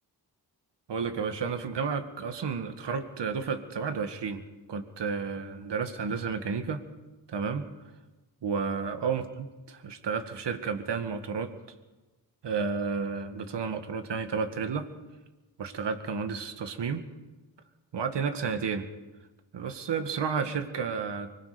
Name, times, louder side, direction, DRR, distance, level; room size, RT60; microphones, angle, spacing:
voice 1, 0.9-4.4 4.7-6.8 7.3-7.6 8.4-11.5 12.4-14.9 15.6-17.0 17.9-18.9 19.5-21.3, right 5 dB, 75° right, 8 dB, 1.9 m, -31 dB
25.0 x 21.5 x 5.1 m, 1.1 s
cardioid pair, 75°, 43 cm